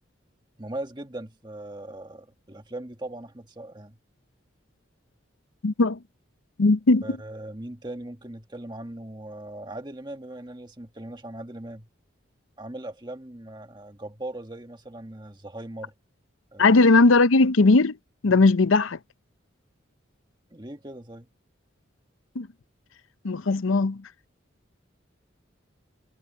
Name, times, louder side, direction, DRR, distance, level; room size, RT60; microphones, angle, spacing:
voice 1, 0.6-4.0 7.0-11.9 12.6-15.9 16.5-16.9 20.5-21.3, right 1 dB, 20° right, 1.7 m, -39 dB
voice 2, 5.6-6.0 6.6-7.0 16.6-18.0 18.2-19.0 22.4-22.5 23.2-24.0, left 3 dB, 85° left, 0.7 m, -18 dB
head